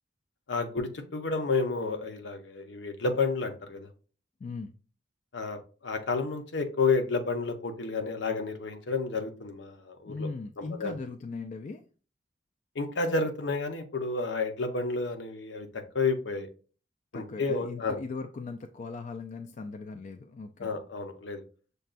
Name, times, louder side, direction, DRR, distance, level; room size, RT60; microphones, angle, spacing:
voice 1, 0.5-3.9 5.3-10.3 10.8-10.9 12.8-15.7 15.9-16.5 17.1-18.0 20.6-21.4, left 4 dB, 75° left, 6 dB, 0.7 m, -30 dB
voice 2, 4.4-4.8 10.1-11.8 17.1-20.8, left 4 dB, 40° left, 6 dB, 0.3 m, -39 dB
6.5 x 2.3 x 2.4 m, 0.37 s
head